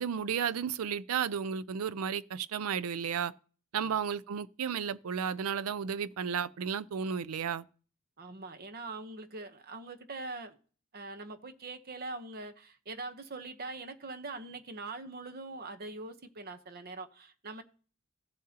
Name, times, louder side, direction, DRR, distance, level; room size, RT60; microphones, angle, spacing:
voice 1, 0.0-3.3 3.7-7.6, right 7 dB, 85° right, 0.4 m, -33 dB
voice 2, 8.2-10.6 10.9-17.6, right 3 dB, 45° right, 0.9 m, -43 dB
15.5 x 7.4 x 2.9 m
head